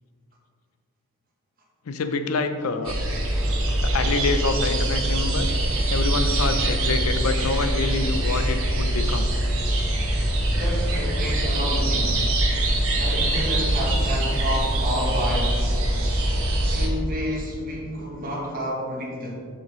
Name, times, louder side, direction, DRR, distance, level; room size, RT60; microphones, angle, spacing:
voice 1, 1.9-2.9 3.8-5.5 5.9-9.3, left 4 dB, 75° left, 8 dB, 0.5 m, -26 dB
sound 1, 2.8-16.9, right 1 dB, 65° right, 1.2 m, -23 dB
voice 2, 10.5-12.4 12.9-15.7 16.7-19.3, equal, 40° right, -2 dB, 1.2 m, -30 dB
7.2 x 5.7 x 3.1 m, 2.1 s
head